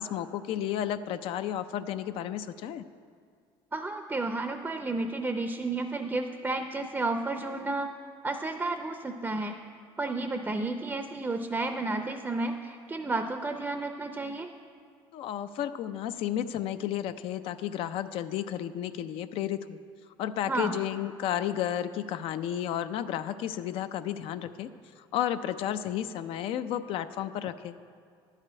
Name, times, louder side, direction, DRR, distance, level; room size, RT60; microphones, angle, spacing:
voice 1, 0.0-2.8 15.1-19.8 20.2-24.7 25.0-27.7, left 10 dB, 70° left, 11 dB, 0.5 m, -32 dB
voice 2, 3.7-7.9 8.2-9.6 10.0-14.5 20.5-20.7, right 2 dB, 15° right, 6 dB, 0.5 m, -32 dB
11.0 x 5.0 x 8.4 m, 2.1 s
cardioid pair, 120°, 10 cm